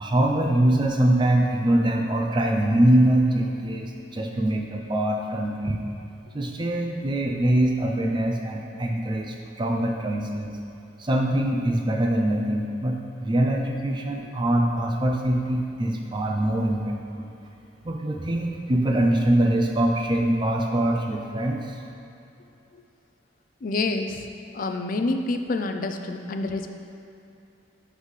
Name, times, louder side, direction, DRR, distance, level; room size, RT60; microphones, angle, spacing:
voice 1, 0.0-5.8 6.3-10.6 11.0-17.3 17.8-21.8, right 1 dB, 25° right, 2 dB, 0.5 m, -23 dB
voice 2, 23.6-24.3 24.5-26.7, left 3 dB, 45° left, 6 dB, 0.4 m, -27 dB
10.5 x 4.1 x 3.2 m, 2.8 s
head